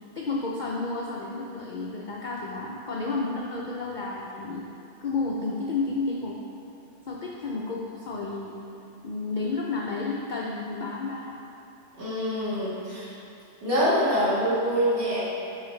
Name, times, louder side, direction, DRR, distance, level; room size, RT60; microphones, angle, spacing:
voice 1, 0.2-4.6 5.0-6.4 7.1-8.5 9.0-11.3, left 3 dB, 65° left, -3 dB, 0.4 m, -31 dB
voice 2, 12.0-13.1 13.6-15.2, equal, 45° right, -10 dB, 1.8 m, -25 dB
9.6 x 3.2 x 3.2 m, 2.9 s
omnidirectional pair, 1.4 m